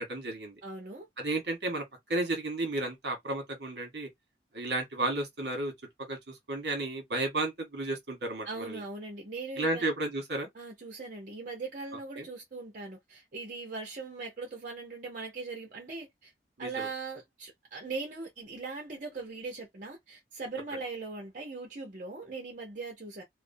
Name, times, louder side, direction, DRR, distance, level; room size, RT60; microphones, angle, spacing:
voice 1, 0.0-0.6 1.2-4.1 4.5-5.7 6.1-8.8 9.6-10.5 12.2-12.3 16.6-16.9, right 2 dB, 65° right, 1.1 m, -33 dB
voice 2, 0.6-1.1 8.4-9.9 10.5-16.3 16.6-23.2, right 3 dB, 45° right, 0.7 m, -40 dB
2.5 x 2.0 x 2.6 m
head